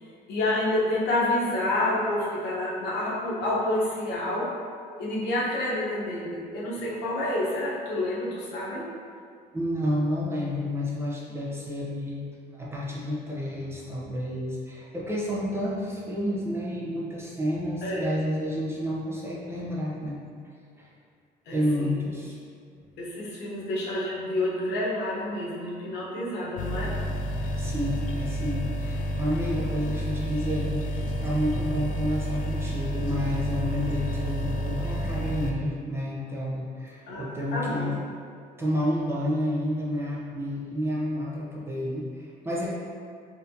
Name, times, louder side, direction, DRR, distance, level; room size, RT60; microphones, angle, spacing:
voice 1, 0.3-4.5 5.0-8.9 17.8-18.1 21.5-22.0 23.0-26.9 37.1-37.9, left 1 dB, 85° left, -5 dB, 0.9 m, -28 dB
voice 2, 9.5-12.3 12.5-20.2 20.8-20.9 21.5-22.4 27.6-38.0 38.6-42.7, equal, 15° right, -5 dB, 0.7 m, -30 dB
sound 1, 26.6-35.5, equal, 55° left, 0.4 m, -30 dB
4.2 x 2.7 x 2.7 m, 2.2 s
cardioid pair, 110°, 17 cm